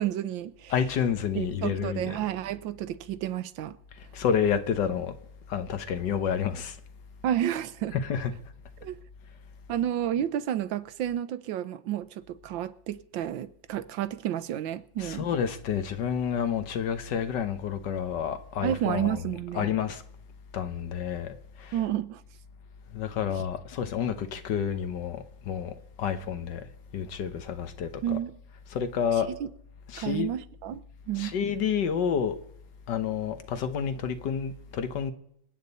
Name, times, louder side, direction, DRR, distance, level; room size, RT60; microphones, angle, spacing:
voice 1, 0.0-0.7 1.3-3.8 7.2-8.0 8.8-9.0 9.7-15.3 18.6-19.7 21.7-22.2 23.3-23.4 28.0-28.3 29.4-29.5 30.0-30.8 31.1-31.3, right 11 dB, 90° right, 1.5 m, -31 dB
voice 2, 0.7-2.3 4.0-5.2 5.5-6.8 7.9-8.3 15.0-20.0 20.5-21.9 22.9-26.7 26.9-28.2 28.7-29.3 29.9-30.3 31.1-32.4 32.9-35.1, left 7 dB, 70° left, 1.6 m, -29 dB
26.5 x 8.9 x 4.1 m
omnidirectional pair, 2.0 m